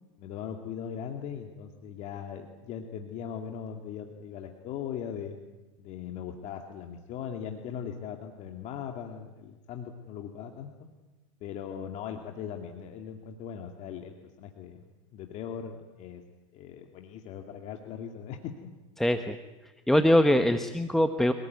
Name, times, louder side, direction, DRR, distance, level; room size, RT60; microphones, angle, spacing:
voice 1, 0.2-5.4 5.8-10.9 11.4-14.9 15.1-16.2 16.5-18.7, left 8 dB, 45° left, 4 dB, 2.4 m, -39 dB
voice 2, 19.0-19.4 19.9-21.3, left 1 dB, ahead, 8 dB, 1.1 m, -22 dB
26.0 x 18.5 x 9.5 m, 1.1 s
hypercardioid pair, 115°, 16 cm